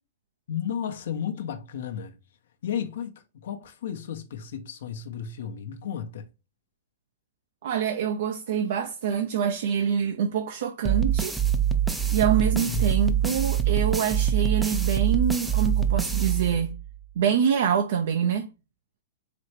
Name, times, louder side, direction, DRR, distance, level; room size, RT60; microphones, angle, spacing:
voice 1, 0.5-2.1 2.6-6.2 12.6-13.0, left 8 dB, 70° left, 0.7 m, -33 dB
voice 2, 7.6-11.4 12.1-16.7 17.2-18.5, right 8 dB, 65° right, 0.5 m, -25 dB
sound 1, 10.8-17.0, right 9 dB, 5° right, 0.4 m, -24 dB
4.1 x 3.2 x 3.1 m
hypercardioid pair, 145°, 0 cm